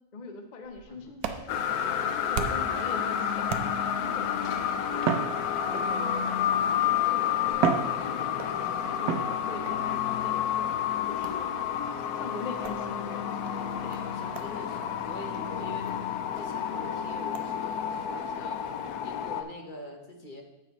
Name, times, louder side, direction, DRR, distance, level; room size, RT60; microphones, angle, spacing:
voice 1, 0.1-3.5 4.0-5.3 5.6-11.5 12.1-13.6, left 3 dB, 50° left, 4 dB, 0.5 m, -43 dB
sound 1, 0.6-2.8 3.5-4.1 5.0-6.1 6.9-7.0 7.5-8.6 9.1-9.8 11.2-11.5 12.6-12.8 13.4-13.5 13.9-14.0 14.3-14.5 14.8-14.9 15.3-15.4 15.9-16.0 16.4-16.5 17.3-17.5, right 7 dB, 80° right, 1.1 m, -32 dB
sound 2, 1.5-19.4, left 9 dB, 85° left, 1.1 m, -30 dB
voice 2, 8.1-8.6 13.8-18.6 19.0-20.4, left 1 dB, 35° left, 2 dB, 1.1 m, -44 dB
10.5 x 7.7 x 3.0 m, 1.0 s
omnidirectional pair, 1.6 m